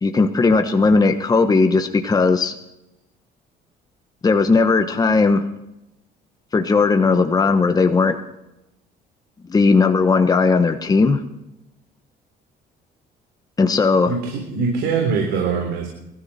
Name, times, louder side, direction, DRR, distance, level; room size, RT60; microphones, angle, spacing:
voice 1, 0.0-2.5 4.2-5.5 6.5-8.2 9.5-11.2 13.6-14.1, left 4 dB, 20° left, 7 dB, 1.2 m, -17 dB
voice 2, 14.1-15.9, right 5 dB, 80° right, 2 dB, 3.6 m, -22 dB
22.5 x 13.5 x 4.3 m, 0.90 s
cardioid pair, 110°, 17 cm